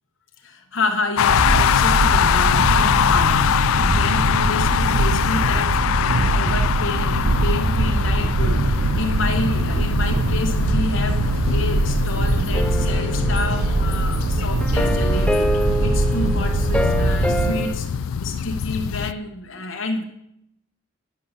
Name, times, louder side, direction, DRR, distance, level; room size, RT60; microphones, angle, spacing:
voice 1, 0.4-17.9 18.2-20.0, left 3 dB, 65° left, 2 dB, 1.1 m, -29 dB
sound 1, 1.2-19.1, left 8 dB, 90° left, 0.4 m, -23 dB
sound 2, 1.3-17.5, right 2 dB, 70° right, 0.6 m, -22 dB
sound 3, 12.5-14.1 14.6-17.7, equal, 5° left, 0.6 m, -26 dB
11.0 x 8.5 x 5.6 m, 0.79 s
head